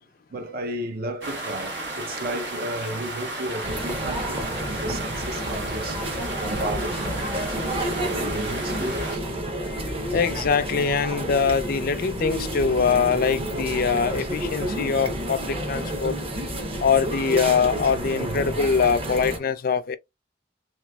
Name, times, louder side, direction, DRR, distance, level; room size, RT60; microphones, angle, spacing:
voice 1, 0.3-9.3 16.7-17.0 18.2-18.6, right 1 dB, 55° right, 0.6 m, -34 dB
sound 1, 1.2-9.2, right 2 dB, 75° right, 1.2 m, -34 dB
sound 2, 3.6-19.4, right 1 dB, 35° right, 0.9 m, -30 dB
voice 2, 9.4-9.8 10.1-16.1 16.8-20.0, left 5 dB, 55° left, 0.4 m, -23 dB
3.4 x 2.9 x 2.3 m
head